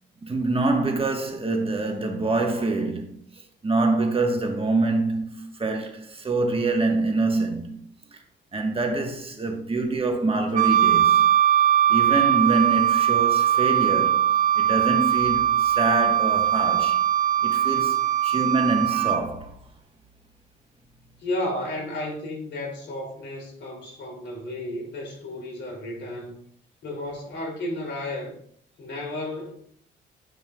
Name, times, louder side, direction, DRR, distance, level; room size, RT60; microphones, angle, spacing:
voice 1, 0.2-3.1 3.6-7.8 8.1-8.2 8.5-11.2 11.9-14.2 14.5-17.0 17.4-19.5, right 3 dB, 30° right, 1.2 m, -25 dB
Wind instrument woodwind instrument, 10.5-19.2, right 10 dB, 45° right, 0.5 m, -20 dB
voice 2, 21.2-26.4 26.8-28.3 28.8-29.5, left 1 dB, 65° left, 2.5 m, -33 dB
9.1 x 5.4 x 2.3 m
cardioid pair, 90°, 20 cm